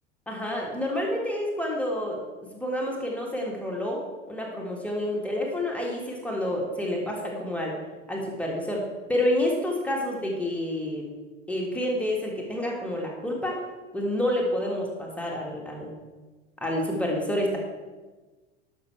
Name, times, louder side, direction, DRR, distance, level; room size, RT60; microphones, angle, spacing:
voice 1, 0.3-2.2 2.5-4.0 4.3-7.8 8.1-11.1 11.5-13.7 13.9-15.9 16.6-17.6, left 1 dB, 5° left, -2 dB, 1.8 m, -28 dB
11.5 x 6.0 x 4.6 m, 1.3 s
figure-of-eight pair, 75°, 35 cm